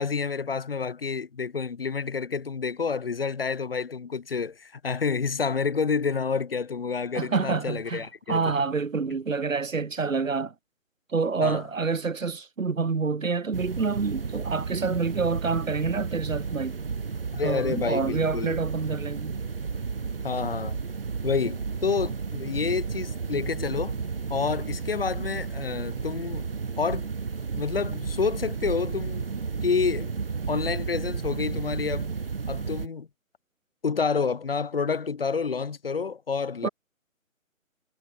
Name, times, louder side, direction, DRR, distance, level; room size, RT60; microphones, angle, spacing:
voice 1, 0.0-8.5 11.4-11.6 17.3-18.6 20.2-20.8 21.2-23.9 24.3-26.5 26.8-27.1 27.6-29.2 29.6-30.1 30.5-32.1 32.5-33.1 33.8-36.7, left 5 dB, 45° left, 2.4 m, -29 dB
voice 2, 7.1-10.5 11.1-16.8 17.4-19.4 36.6-36.7, right 4 dB, 70° right, 4.0 m, -27 dB
sound 1, 13.5-32.9, right 5 dB, 45° right, 0.8 m, -32 dB
hypercardioid pair, 175°, 41 cm